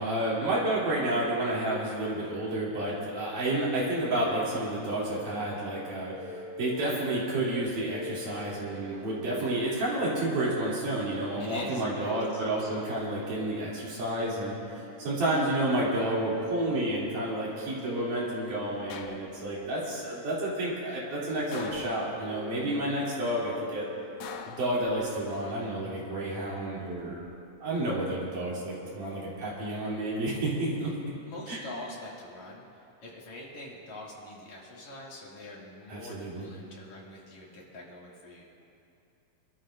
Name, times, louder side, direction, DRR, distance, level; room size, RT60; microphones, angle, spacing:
voice 1, 0.0-6.2 6.6-23.9 24.5-27.3 27.6-30.9 31.5-31.6 35.9-36.5, right 1 dB, 75° right, -7 dB, 4.6 m, -30 dB
sound 1, 6.2-24.7, equal, 45° right, 2.8 m, -45 dB
voice 2, 11.4-12.4 31.2-32.7 33.0-38.4, left 1 dB, 60° left, -4 dB, 3.5 m, -44 dB
sound 2, 18.9-19.7 21.5-22.5 24.2-25.3 26.7-27.3, left 6 dB, 85° left, 2.5 m, -44 dB
26.5 x 13.0 x 2.5 m, 2.7 s
omnidirectional pair, 3.8 m